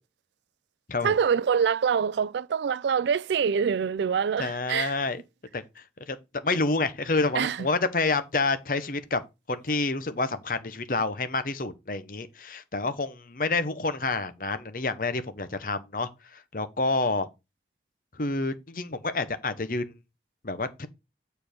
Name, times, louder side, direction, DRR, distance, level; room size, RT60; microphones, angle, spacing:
voice 1, 1.0-4.9 7.3-7.7, right 7 dB, 80° right, 0.3 m, -25 dB
voice 2, 4.4-5.2 5.5-5.6 6.1-6.2 6.4-9.2 9.5-17.3 18.2-19.9 20.4-20.9, left 3 dB, 50° left, 0.9 m, -28 dB
7.0 x 4.6 x 5.1 m
head